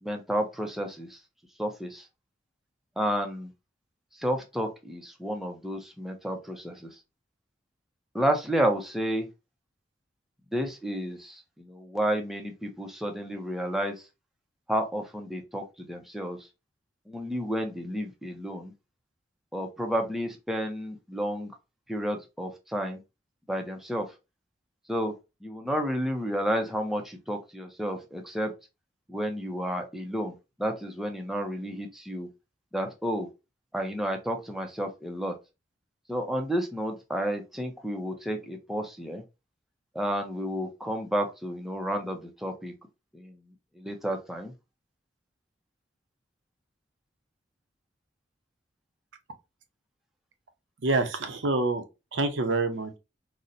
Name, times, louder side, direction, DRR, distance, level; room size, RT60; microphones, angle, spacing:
voice 1, 0.0-1.2 1.6-2.0 3.0-3.5 4.2-6.9 8.1-9.3 10.5-14.0 14.7-16.4 17.1-18.7 19.5-21.5 21.9-23.0 23.5-24.1 24.9-25.1 25.4-28.5 29.1-30.3 30.6-32.3 32.7-33.3 33.7-35.3 36.1-39.2 39.9-42.7 43.1-43.4 43.8-44.5, equal, ahead, 0.5 m, -31 dB
voice 2, 50.8-51.8 52.1-53.0, right 3 dB, 80° right, 0.6 m, -26 dB
4.0 x 2.1 x 2.5 m
head